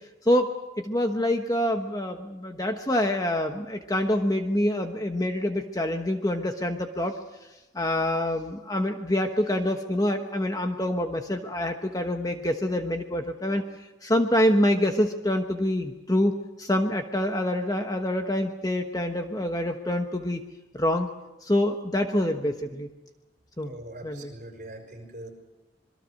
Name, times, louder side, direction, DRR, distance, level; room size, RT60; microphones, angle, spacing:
voice 1, 0.2-7.2 7.7-13.6 14.0-16.3 16.6-20.4 20.7-21.1 21.4-22.9 23.6-23.7 24.0-24.3, left 1 dB, 20° left, 5 dB, 1.1 m, -26 dB
voice 2, 23.6-25.3, right 1 dB, 45° right, 4 dB, 5.8 m, -42 dB
26.5 x 22.0 x 6.5 m, 1.0 s
head